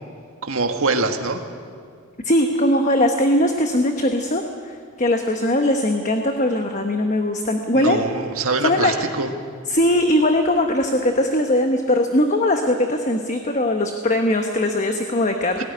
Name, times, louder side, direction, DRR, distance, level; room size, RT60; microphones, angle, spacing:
voice 1, 0.4-1.4 7.7-9.3 15.6-15.7, right 3 dB, 70° right, 5 dB, 1.8 m, -23 dB
voice 2, 2.2-8.0 8.6-8.9 9.7-15.6, left 1 dB, 35° left, 4 dB, 1.1 m, -20 dB
18.5 x 18.0 x 9.8 m, 2.1 s
head